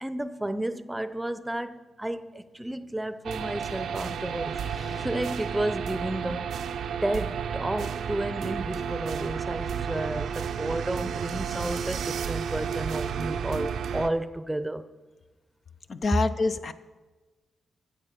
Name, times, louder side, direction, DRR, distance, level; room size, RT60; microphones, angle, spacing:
voice 1, 0.0-4.6 5.0-6.5 7.0-14.8, right 1 dB, 10° right, 0.7 m, -32 dB
sound 1, 2.0-6.7, right 1 dB, 80° left, 5.2 m, -48 dB
sound 2, 3.2-14.1, right 7 dB, 80° right, 0.5 m, -32 dB
voice 2, 15.9-16.7, left 3 dB, 55° left, 0.6 m, -26 dB
14.5 x 6.9 x 6.9 m
cardioid pair, 60°, 0 cm